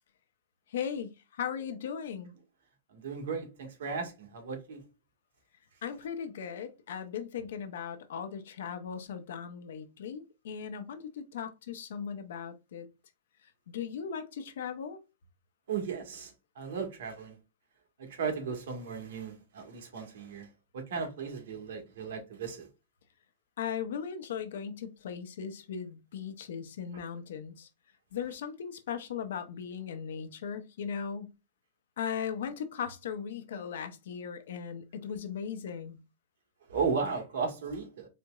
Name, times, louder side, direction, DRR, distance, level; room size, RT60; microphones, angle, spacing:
voice 1, 0.7-2.3 5.8-12.9 13.7-15.0 23.6-27.7 28.1-31.3 32.0-36.0, left 7 dB, 80° left, 0.8 m, -38 dB
voice 2, 2.9-4.8 15.7-16.3 16.6-17.3 18.0-20.5 20.7-22.7 36.7-38.1, right 5 dB, 80° right, 1.4 m, -35 dB
4.2 x 3.0 x 2.3 m
supercardioid pair, 160°, 0 cm